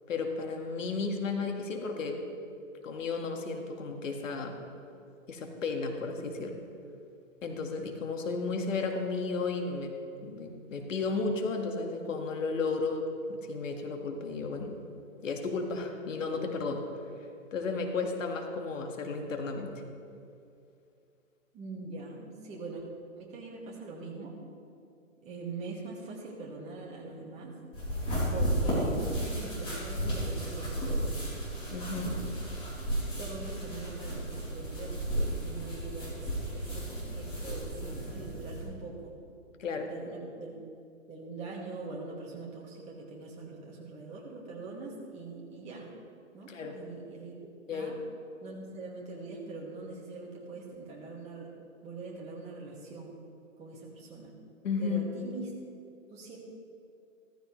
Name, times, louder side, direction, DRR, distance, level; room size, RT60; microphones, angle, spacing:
voice 1, 0.1-2.2 2.8-4.5 5.3-6.6 7.4-9.9 10.2-14.8 15.2-16.8 17.5-19.7 31.7-32.1 39.6-39.9 46.5-46.8 47.7-47.9 54.6-55.1, left 4 dB, 70° left, 3 dB, 1.9 m, -33 dB
voice 2, 21.5-22.8 23.2-24.3 25.2-27.5 28.3-31.1 31.9-32.3 32.9-36.9 37.1-39.1 39.8-40.6 41.1-45.9 46.3-48.0 48.4-51.5 51.8-53.1 53.6-54.3 54.8-55.5 56.1-56.4, right 3 dB, 15° right, -3 dB, 2.2 m, -43 dB
sound 1, 27.7-38.6, right 1 dB, 15° left, 3.7 m, -33 dB
15.0 x 14.5 x 3.3 m, 2.5 s
hypercardioid pair, 145°, 40 cm